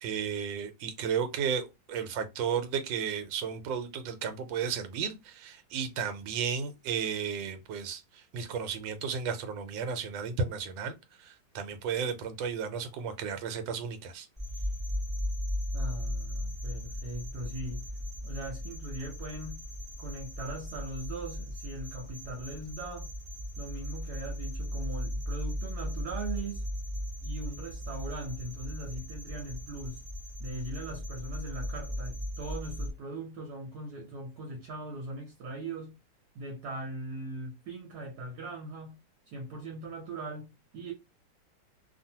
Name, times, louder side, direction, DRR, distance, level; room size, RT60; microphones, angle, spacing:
voice 1, 0.0-14.3, right 6 dB, 85° right, 1.3 m, -34 dB
sound 1, 14.4-32.9, equal, 10° right, 0.8 m, -37 dB
voice 2, 15.7-17.8 18.2-19.6 20.0-23.1 23.6-26.6 27.2-30.0 30.4-36.0 36.3-39.0 39.3-40.9, right 2 dB, 70° right, 1.2 m, -40 dB
2.6 x 2.5 x 2.7 m
omnidirectional pair, 2.0 m